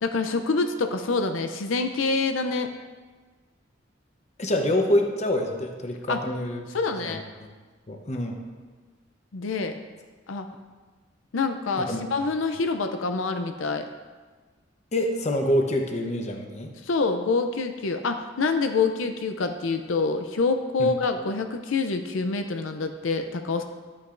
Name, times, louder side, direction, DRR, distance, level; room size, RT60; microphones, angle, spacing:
voice 1, 0.0-2.7 6.1-6.2 6.7-7.2 9.3-9.8 10.3-10.5 11.3-13.9 16.8-23.6, left 4 dB, 90° left, 7 dB, 0.5 m, -26 dB
voice 2, 4.4-7.5 7.9-8.4 11.8-12.0 14.9-16.7 20.8-20.9, left 1 dB, 35° left, 3 dB, 0.9 m, -26 dB
11.5 x 8.6 x 2.6 m, 1.4 s
head